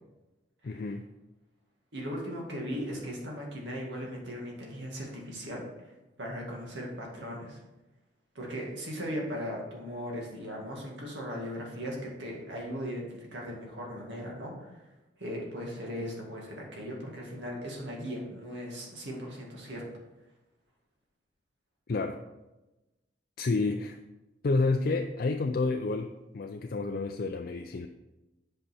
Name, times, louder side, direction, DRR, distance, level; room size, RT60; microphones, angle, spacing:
voice 1, 0.6-1.0 21.9-22.2 23.4-24.0 24.4-27.9, left 3 dB, 50° left, 5 dB, 0.4 m, -29 dB
voice 2, 1.9-5.9 6.2-7.6 8.3-14.8 15.2-19.8, equal, 75° right, -2 dB, 2.2 m, -38 dB
7.6 x 5.4 x 4.4 m, 1.0 s
head